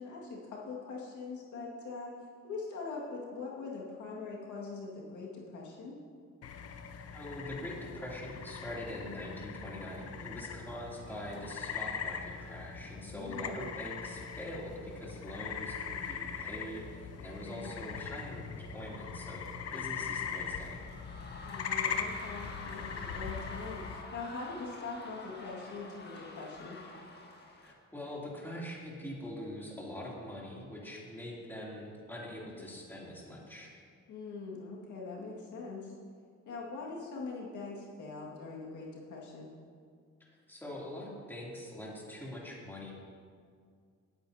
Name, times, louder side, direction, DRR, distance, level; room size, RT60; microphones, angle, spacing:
voice 1, 0.0-2.1 2.4-6.0 13.1-13.7 17.4-17.7 21.4-26.8 34.1-35.9 36.5-39.5, left 4 dB, 75° left, -3 dB, 2.0 m, -42 dB
sound 1, 6.4-24.0, left 6 dB, 55° left, 0.8 m, -40 dB
voice 2, 7.1-20.8 27.6-33.7 40.2-42.9, left 1 dB, 5° left, -5 dB, 2.8 m, -43 dB
sound 2, 19.4-27.7, left 2 dB, 35° left, 1.6 m, -48 dB
17.5 x 8.9 x 2.8 m, 2.1 s
cardioid pair, 90°, 30 cm